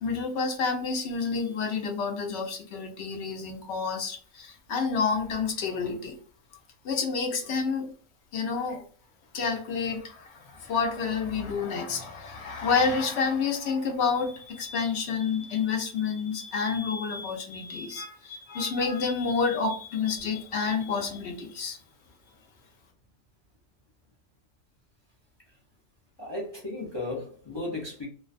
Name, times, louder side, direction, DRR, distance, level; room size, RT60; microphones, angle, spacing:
voice 1, 0.0-6.2 6.8-7.9 8.3-8.9 9.3-21.8, left 5 dB, 65° left, 0.8 m, -29 dB
voice 2, 26.2-28.1, left 2 dB, 40° left, 0.3 m, -35 dB
2.5 x 2.1 x 2.4 m
omnidirectional pair, 1.4 m